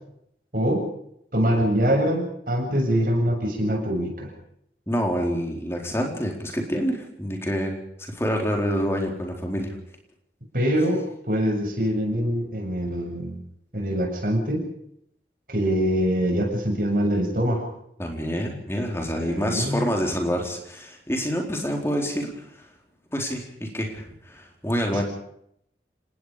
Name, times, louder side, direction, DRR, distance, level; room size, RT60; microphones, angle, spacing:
voice 1, 0.5-0.8 1.3-4.3 10.5-13.4 13.7-14.6 15.5-17.7 19.2-19.9, equal, 50° right, 2 dB, 7.4 m, -24 dB
voice 2, 4.9-9.8 18.0-22.7 23.1-25.0, equal, 15° left, 2 dB, 4.2 m, -27 dB
29.5 x 19.0 x 5.1 m, 0.72 s
head